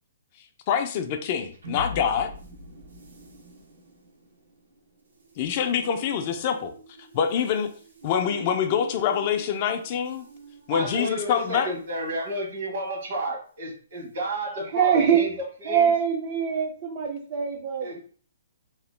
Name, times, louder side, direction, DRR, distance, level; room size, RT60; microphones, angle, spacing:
voice 1, 0.7-2.3 5.4-6.7 7.1-7.7 8.0-10.2 10.7-11.7, left 8 dB, 35° left, 7 dB, 0.3 m, -25 dB
sound 1, 1.2-11.8, equal, 85° right, 0.9 m, -45 dB
voice 2, 10.7-15.9 17.8-18.0, equal, 60° right, 0 dB, 1.1 m, -31 dB
voice 3, 14.7-15.3 15.7-18.0, right 7 dB, 35° right, 1 dB, 0.4 m, -23 dB
2.9 x 2.1 x 3.2 m, 0.43 s
hypercardioid pair, 155°, 0 cm